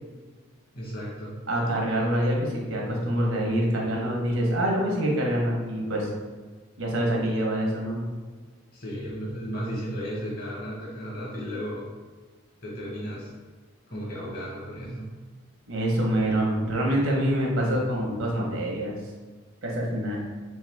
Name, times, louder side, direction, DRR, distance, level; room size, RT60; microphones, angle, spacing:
voice 1, 0.7-1.4 8.7-11.9 12.6-13.3 13.9-15.2, equal, 45° left, -4 dB, 1.2 m, -34 dB
voice 2, 1.5-6.1 6.8-8.0 15.7-19.0 19.6-20.2, right 1 dB, 75° right, -1 dB, 1.0 m, -25 dB
3.7 x 3.2 x 3.4 m, 1.4 s
head